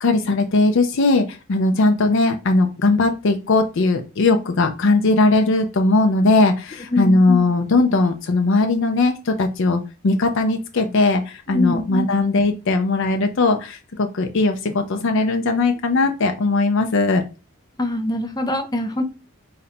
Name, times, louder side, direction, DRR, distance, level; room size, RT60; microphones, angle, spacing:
voice 1, 0.0-17.2, left 2 dB, 60° left, 5 dB, 0.5 m, -19 dB
voice 2, 11.5-11.8 17.8-19.0, left 2 dB, 20° left, 4 dB, 0.7 m, -23 dB
4.2 x 2.6 x 4.2 m, 0.30 s
head